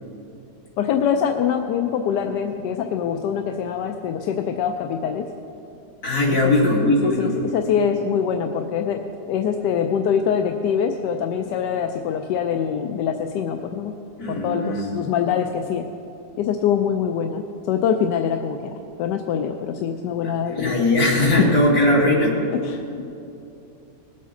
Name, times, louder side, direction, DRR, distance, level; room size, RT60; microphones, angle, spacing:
voice 1, 0.8-5.2 6.3-6.8 7.0-9.0 9.3-13.9 14.3-15.8 16.4-18.7 19.0-20.7 21.4-21.5 22.6-23.0, left 8 dB, 85° left, 5 dB, 1.2 m, -24 dB
voice 2, 6.0-7.4 14.2-14.9 20.5-22.4, left 1 dB, 60° left, -4 dB, 2.9 m, -19 dB
20.0 x 8.4 x 3.7 m, 2.7 s
omnidirectional pair, 1.8 m